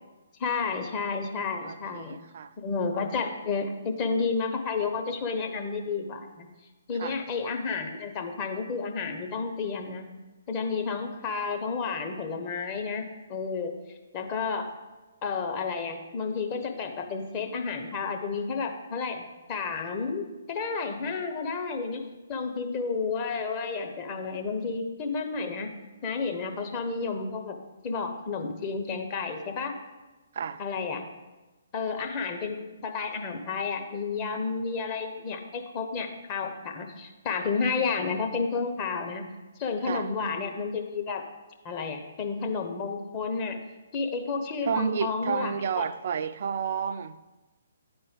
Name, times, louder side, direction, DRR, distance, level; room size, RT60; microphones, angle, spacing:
voice 1, 0.4-2.2 2.6-6.5 6.9-10.1 10.5-13.0 13.3-13.7 14.1-14.7 15.2-22.0 22.3-25.7 26.0-27.6 27.8-29.7 30.6-31.0 31.7-39.2 39.6-41.2 41.6-43.6 43.9-45.9, left 4 dB, 30° left, 0.9 m, -31 dB
voice 2, 1.6-2.5 7.0-7.2 30.3-30.6 39.8-40.1 44.6-47.2, right 7 dB, 50° right, 0.3 m, -31 dB
9.4 x 4.4 x 5.2 m
figure-of-eight pair, 135°, 0 cm